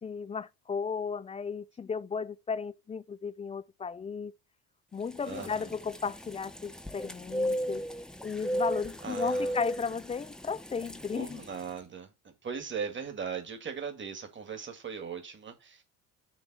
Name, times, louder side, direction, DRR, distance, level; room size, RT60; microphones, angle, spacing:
voice 1, 0.0-4.3 4.9-7.8 8.2-11.4, left 5 dB, 20° left, 0.3 m, -35 dB
sound 1, 5.1-11.7, equal, ahead, 0.8 m, -36 dB
voice 2, 5.2-5.7 9.0-9.6 11.1-15.8, right 6 dB, 30° right, 2.0 m, -39 dB
7.3 x 3.2 x 6.1 m
supercardioid pair, 80°, 39 cm